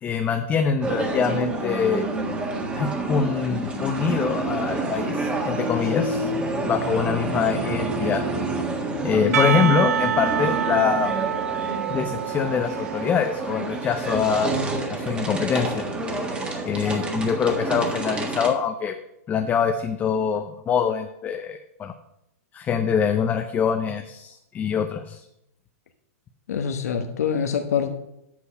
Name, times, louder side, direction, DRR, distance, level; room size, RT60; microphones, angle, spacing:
voice 1, 0.0-2.0 2.7-6.3 6.6-8.2 9.0-11.1 11.9-14.5 14.9-15.9 16.7-19.0 19.3-21.9 22.5-25.2, left 7 dB, 20° left, 6 dB, 0.6 m, -24 dB
sound 1, 0.8-18.5, right 2 dB, 15° right, 1.5 m, -28 dB
Percussion / Church bell, 9.3-14.3, right 10 dB, 80° right, 0.4 m, -27 dB
voice 2, 26.5-28.0, left 7 dB, 80° left, 5 dB, 1.2 m, -25 dB
8.5 x 6.2 x 5.8 m, 0.82 s
hypercardioid pair, 135°, 8 cm